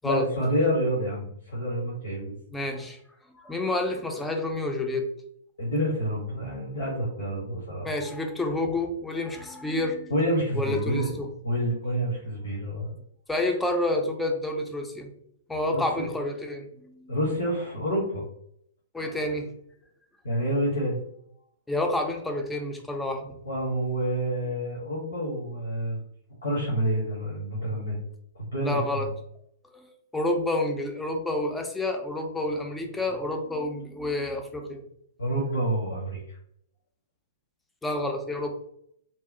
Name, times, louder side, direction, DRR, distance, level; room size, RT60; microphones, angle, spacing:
voice 1, 0.0-2.3 5.6-7.9 10.1-12.9 15.7-16.1 17.1-18.2 20.2-21.0 23.4-26.0 26.4-28.0 28.4-29.0 35.2-36.4, equal, 75° left, -6 dB, 0.9 m, -28 dB
voice 2, 2.5-3.0 3.3-5.1 7.8-10.1 10.6-11.3 13.3-15.1 15.5-17.2 18.9-19.5 21.7-23.4 28.6-29.1 29.6-29.8 30.1-34.8 37.8-38.5, left 1 dB, 5° left, 2 dB, 0.4 m, -29 dB
2.8 x 2.0 x 2.5 m, 0.70 s
figure-of-eight pair, 110°, 0 cm